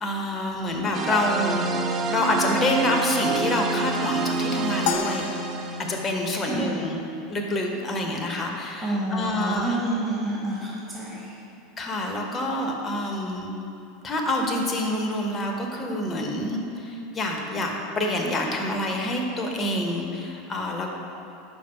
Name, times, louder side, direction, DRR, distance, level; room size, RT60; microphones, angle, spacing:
voice 1, 0.0-1.6 2.1-5.3 5.9-9.8 11.8-13.5 14.0-20.9, left 1 dB, 25° left, 2 dB, 0.9 m, -27 dB
sound 1, 0.9-6.1, right 4 dB, 35° right, 0.5 m, -27 dB
sound 2, 4.9-7.2, left 9 dB, 55° left, 0.3 m, -33 dB
voice 2, 6.4-6.8 8.8-11.4, right 1 dB, 10° right, -6 dB, 1.5 m, -29 dB
5.2 x 5.2 x 5.6 m, 2.7 s
figure-of-eight pair, 80°, 0 cm